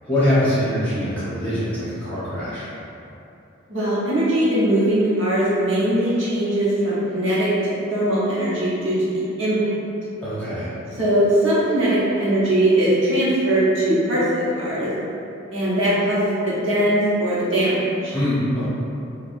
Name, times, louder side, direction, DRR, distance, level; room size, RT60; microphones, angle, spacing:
voice 1, 0.0-2.7 10.2-10.7 18.1-18.6, left 1 dB, 10° left, -13 dB, 1.1 m, -23 dB
voice 2, 3.7-9.7 11.0-14.9 15.5-18.1, right 1 dB, 60° right, -9 dB, 1.0 m, -20 dB
5.5 x 2.3 x 2.6 m, 2.8 s
head